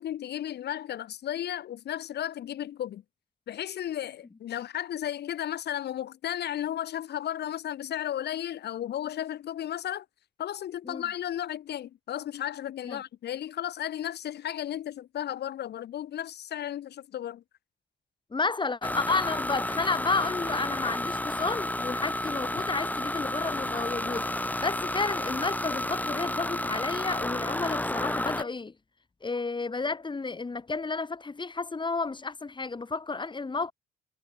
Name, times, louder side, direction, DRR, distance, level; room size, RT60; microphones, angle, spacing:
voice 1, 0.0-3.0 3.5-10.1 10.4-17.4, left 11 dB, 60° left, 2.4 m, -34 dB
voice 2, 18.3-28.7 29.2-33.7, left 3 dB, 25° left, 3.2 m, -31 dB
sound 1, 18.8-28.4, left 1 dB, 10° left, 2.5 m, -31 dB
hypercardioid pair, 60°, 19 cm